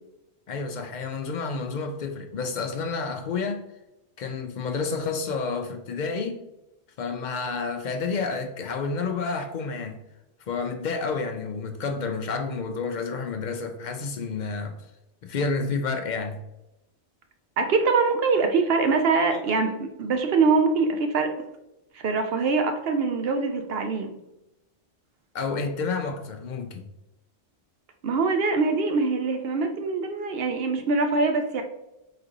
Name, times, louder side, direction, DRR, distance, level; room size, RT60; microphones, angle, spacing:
voice 1, 0.5-3.6 4.2-6.4 7.0-10.0 10.5-14.8 15.2-16.4 19.3-19.4 25.3-26.9, left 4 dB, 60° left, 5 dB, 0.5 m, -30 dB
voice 2, 17.6-21.4 21.9-24.1 28.0-31.6, right 4 dB, 65° right, 6 dB, 0.7 m, -23 dB
4.2 x 3.8 x 2.9 m, 0.89 s
omnidirectional pair, 1.2 m